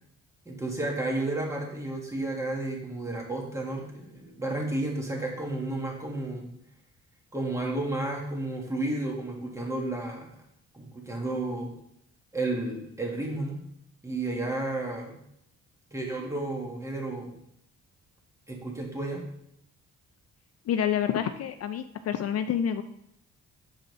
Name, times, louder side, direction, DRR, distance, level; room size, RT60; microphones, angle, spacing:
voice 1, 0.4-6.5 7.3-10.3 10.7-11.7 12.3-13.6 14.0-15.1 15.9-17.4 18.5-19.3, right 2 dB, 10° right, -1 dB, 1.7 m, -32 dB
voice 2, 20.7-22.8, left 9 dB, 55° left, 9 dB, 0.4 m, -28 dB
6.2 x 5.0 x 3.2 m, 0.74 s
cardioid pair, 90°, 30 cm